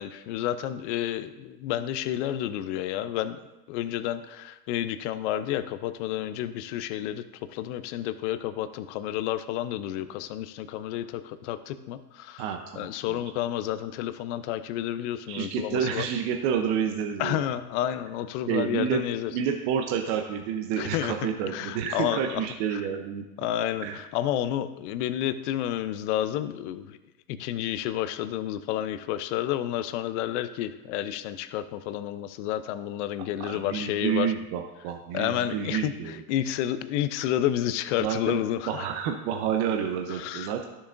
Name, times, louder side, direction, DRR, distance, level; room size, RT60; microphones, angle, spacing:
voice 1, 0.0-3.4 3.7-7.2 7.5-12.4 12.8-16.1 17.2-19.3 20.8-21.1 21.5-22.4 22.7-22.8 23.4-27.0 27.4-34.3 35.1-38.9 40.1-40.5, left 12 dB, 50° left, 12 dB, 0.6 m, -30 dB
voice 2, 12.4-13.3 15.3-17.4 18.5-19.0 19.3-23.3 23.8-24.0 33.4-36.2 38.0-38.4 38.7-40.6, right 8 dB, 45° right, 4 dB, 0.8 m, -29 dB
12.0 x 7.1 x 2.6 m, 1.0 s
supercardioid pair, 135°, 47 cm